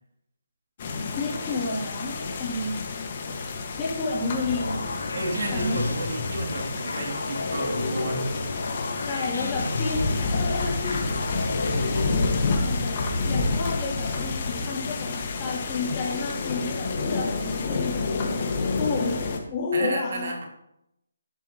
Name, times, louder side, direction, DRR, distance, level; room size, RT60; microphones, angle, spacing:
sound 1, 0.8-19.4, left 3 dB, 40° left, 1.8 m, -29 dB
voice 1, 1.1-2.8 3.8-4.7 5.5-5.8 9.1-11.3 11.7-12.9 13.2-15.1 15.4-18.5 18.8-20.3, left 3 dB, 20° left, -4 dB, 3.2 m, -31 dB
sound 2, 4.4-12.5, left 2 dB, 75° left, 3.8 m, -31 dB
voice 2, 5.1-8.3 19.7-20.5, right 2 dB, 55° right, 0 dB, 2.8 m, -32 dB
12.0 x 11.5 x 3.1 m, 0.80 s
hypercardioid pair, 160°, 0 cm